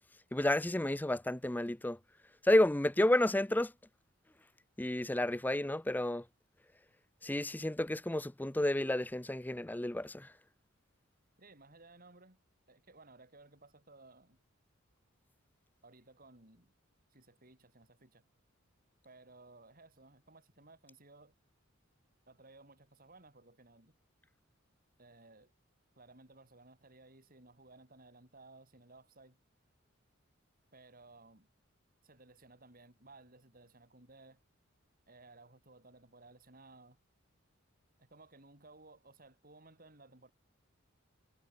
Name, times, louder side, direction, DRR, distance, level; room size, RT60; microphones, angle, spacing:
voice 1, 0.3-2.0 2.4-3.7 4.8-6.2 7.2-10.3, left 1 dB, 10° left, 0.5 m, -31 dB
voice 2, 11.4-12.4 12.7-14.4 15.8-16.7 17.1-18.2 19.0-21.3 22.3-24.0 25.0-25.5 25.9-29.4 30.7-31.5 32.0-34.4 35.1-37.0 38.0-40.3, right 2 dB, 45° right, 5.9 m, -59 dB
head